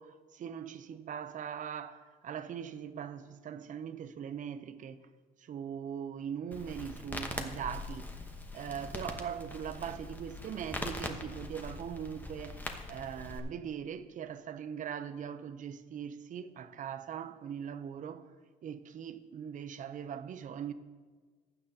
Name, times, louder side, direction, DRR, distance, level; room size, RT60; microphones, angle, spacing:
voice 1, 0.0-5.1 5.4-8.1 8.5-12.6 12.9-18.2 18.6-20.7, right 8 dB, 50° right, 0.7 m, -41 dB
Crackle, 6.5-13.4, left 2 dB, 10° left, 1.1 m, -42 dB
15.0 x 9.8 x 2.8 m
cardioid pair, 110°, 17 cm